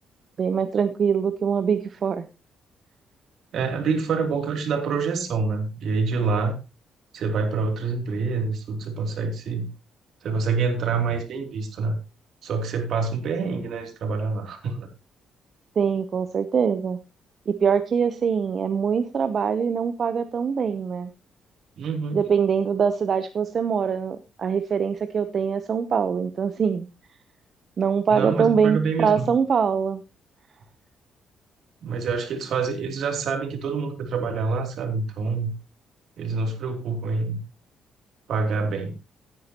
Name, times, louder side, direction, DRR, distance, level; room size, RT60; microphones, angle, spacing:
voice 1, 0.4-2.3 15.8-17.0 17.5-21.1 22.1-26.9 27.8-30.0, right 6 dB, 50° right, 10 dB, 0.8 m, -23 dB
voice 2, 3.5-6.6 7.1-9.7 10.2-12.0 12.4-14.9 21.8-22.2 28.1-29.3 31.8-35.5 36.2-37.4 38.3-38.9, right 4 dB, 70° right, 5 dB, 2.9 m, -26 dB
15.0 x 9.5 x 3.0 m, 0.27 s
cardioid pair, 90°, 0 cm